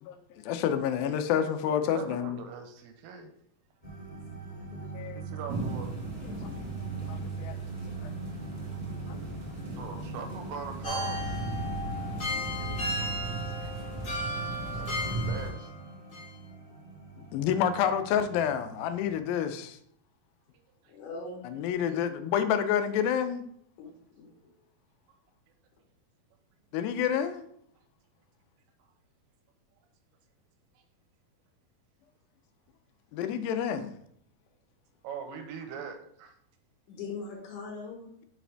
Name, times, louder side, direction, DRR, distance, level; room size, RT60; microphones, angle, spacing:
voice 1, 0.0-2.4 4.8-5.3 6.6-6.7 6.9-7.6 8.0-8.1 9.1-9.2 10.2-10.3 12.4-13.5 14.0-14.1 14.9-15.0 17.2-19.8 21.4-23.4 26.7-27.4 33.1-33.9, left 8 dB, 80° left, 10 dB, 2.3 m, -29 dB
voice 2, 1.9-3.3 5.2-5.9 8.4-8.8 9.8-11.5 13.6-13.7 14.6-15.7 20.8-20.9 35.0-36.3, right 6 dB, 80° right, 6 dB, 2.2 m, -42 dB
sound 1, 3.8-19.2, right 4 dB, 5° left, 1.3 m, -41 dB
sound 2, 5.5-15.5, right 2 dB, 40° right, 1.2 m, -38 dB
sound 3, 10.8-15.8 16.1-16.3, left 1 dB, 50° left, 1.0 m, -35 dB
voice 3, 20.9-22.0 23.8-24.3 36.9-38.1, left 4 dB, 65° left, -1 dB, 2.1 m, -41 dB
5.7 x 5.0 x 3.3 m, 0.68 s
omnidirectional pair, 4.4 m